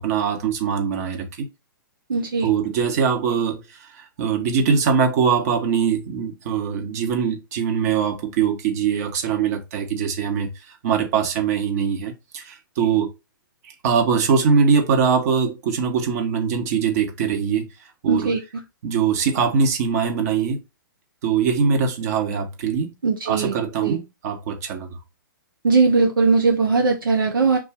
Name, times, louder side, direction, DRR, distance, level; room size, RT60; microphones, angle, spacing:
voice 1, 0.0-1.5 2.4-13.1 13.6-17.7 18.0-18.3 18.8-20.6 21.2-22.9 23.3-24.9, right 6 dB, 45° right, 1.3 m, -22 dB
voice 2, 2.1-2.5 18.1-18.4 23.0-23.6 23.8-24.0 25.6-27.6, right 4 dB, 75° right, 0.8 m, -19 dB
3.8 x 2.7 x 4.3 m
figure-of-eight pair, 120°, 11 cm